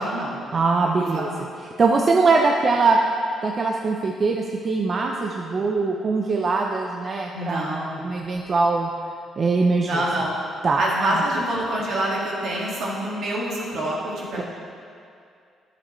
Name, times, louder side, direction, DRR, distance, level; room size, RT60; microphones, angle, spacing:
voice 1, 0.0-0.3 1.1-1.4 7.3-8.1 9.8-10.3 10.8-14.4, right 1 dB, 65° right, -4 dB, 1.9 m, -26 dB
voice 2, 0.5-1.3 1.8-3.0 3.4-8.9 9.4-10.0 10.6-10.8, right 4 dB, 40° right, 1 dB, 0.5 m, -22 dB
10.5 x 6.7 x 3.1 m, 2.4 s
cardioid pair, 90°, 0 cm